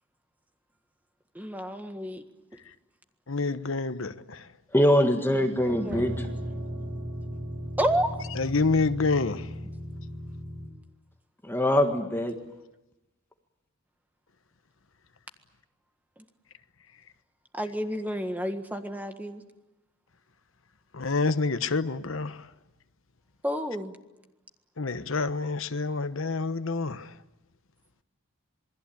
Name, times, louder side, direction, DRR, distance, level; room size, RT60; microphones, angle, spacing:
voice 1, 1.3-2.2 5.7-6.0 7.8-8.1 17.5-19.4 23.4-23.9, equal, 10° right, 1.6 m, -30 dB
voice 2, 3.3-4.5 8.3-9.5 20.9-22.5 24.8-27.1, left 3 dB, 70° left, 1.1 m, -28 dB
voice 3, 4.7-6.3 11.4-12.4, equal, 10° left, 1.7 m, -23 dB
sound 1, 5.5-10.7, equal, 40° right, 7.4 m, -36 dB
27.5 x 21.0 x 8.7 m
head